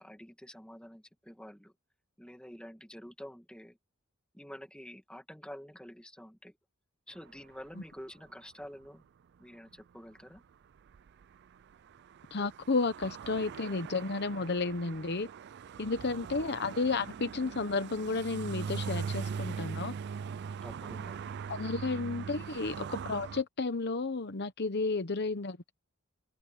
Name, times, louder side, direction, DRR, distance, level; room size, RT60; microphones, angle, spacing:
voice 1, 0.0-1.7 2.2-3.8 4.3-6.6 7.1-9.0 9.4-10.4 20.6-21.4, equal, 5° left, 2.1 m, -48 dB
sound 1, 10.4-10.5 10.9-23.4, right 6 dB, 50° right, 0.4 m, -40 dB
voice 2, 12.3-15.3 15.8-19.9 21.5-25.6, left 3 dB, 50° left, 0.9 m, -32 dB
open air
head